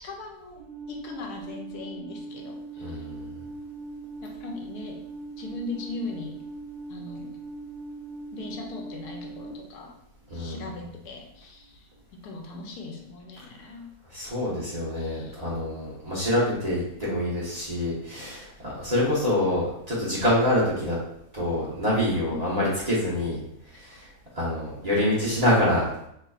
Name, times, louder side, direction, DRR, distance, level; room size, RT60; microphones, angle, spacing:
voice 1, 0.0-3.0 4.2-5.0 5.4-6.4 6.9-7.4 8.3-9.9 10.3-11.9 12.2-13.9 14.9-15.4 22.2-22.7 23.9-24.0, left 3 dB, 80° left, 1 dB, 1.2 m, -39 dB
Alarm, 0.6-9.5, right 3 dB, 85° right, 1.2 m, -40 dB
voice 2, 2.8-3.3 10.3-10.7 14.1-21.0 21.3-23.4 23.7-24.1 24.4-25.9, left 1 dB, 30° right, -9 dB, 0.9 m, -26 dB
4.0 x 3.2 x 2.3 m, 0.77 s
omnidirectional pair, 1.7 m